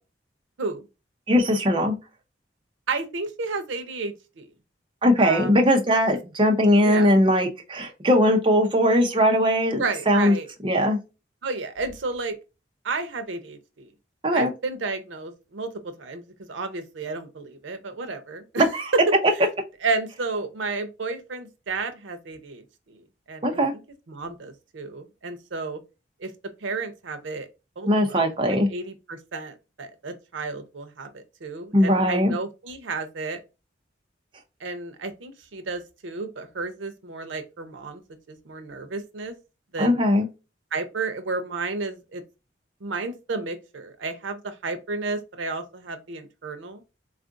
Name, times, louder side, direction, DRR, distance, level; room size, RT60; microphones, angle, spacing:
voice 1, 1.3-2.0 5.0-10.3 10.6-11.0 14.2-14.5 18.6-18.9 23.4-23.7 27.8-28.7 31.7-32.3 39.8-40.3, equal, 25° right, 0.6 m, -20 dB
voice 2, 2.9-4.5 5.2-5.6 6.8-7.1 9.7-10.5 11.4-12.4 12.8-13.9 14.3-18.7 18.9-19.0 19.3-19.5 19.8-23.6 24.1-25.8 26.2-26.3 26.6-27.5 27.8-28.2 28.7-33.4 34.6-38.0 38.3-39.3 39.7-40.0 40.7-42.2 42.8-46.8, right 3 dB, 85° right, 0.6 m, -32 dB
3.6 x 2.4 x 2.4 m
head